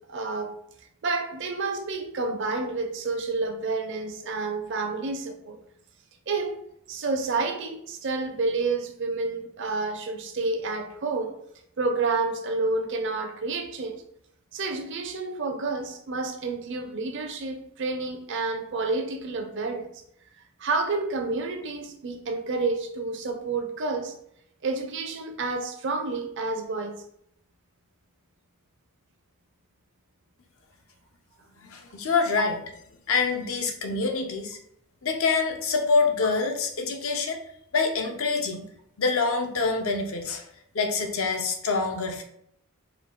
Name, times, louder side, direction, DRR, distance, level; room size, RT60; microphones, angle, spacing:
voice 1, 0.1-0.5 1.0-5.6 6.3-6.6 6.9-11.3 11.8-14.0 14.5-19.9 20.6-24.2 24.6-26.9, right 3 dB, 55° right, 5 dB, 0.6 m, -29 dB
voice 2, 31.6-32.6 33.1-34.6 35.0-37.4 37.7-38.7 39.0-40.4 40.7-42.2, left 4 dB, 65° left, 4 dB, 0.6 m, -26 dB
4.5 x 2.3 x 3.7 m, 0.72 s
head